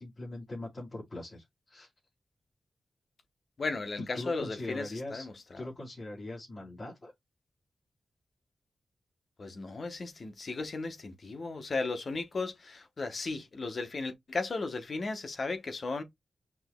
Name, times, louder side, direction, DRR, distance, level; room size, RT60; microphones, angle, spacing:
voice 1, 0.0-1.9 4.0-5.3 5.5-7.1, left 2 dB, 45° left, 3.3 m, -41 dB
voice 2, 3.6-5.3 9.4-16.0, left 3 dB, 60° left, 0.9 m, -35 dB
6.0 x 2.8 x 2.2 m
cardioid pair, 55°, 0 cm